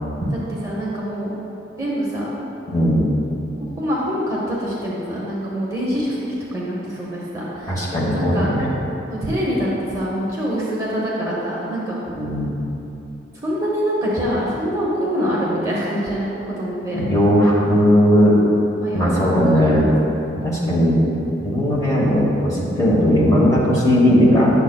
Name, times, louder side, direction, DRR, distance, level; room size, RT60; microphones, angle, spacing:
voice 1, 0.3-1.3 1.8-2.3 3.8-6.2 6.5-7.7 8.1-8.5 9.1-12.0 13.4-17.0 18.8-20.1, equal, 15° right, -6 dB, 0.9 m, -25 dB
voice 2, 2.7-3.1 7.7-8.7 12.2-12.5 16.9-18.4 18.9-19.8 20.4-21.0 21.4-24.5, equal, 20° left, -6 dB, 1.2 m, -17 dB
9.1 x 6.8 x 2.3 m, 2.9 s
head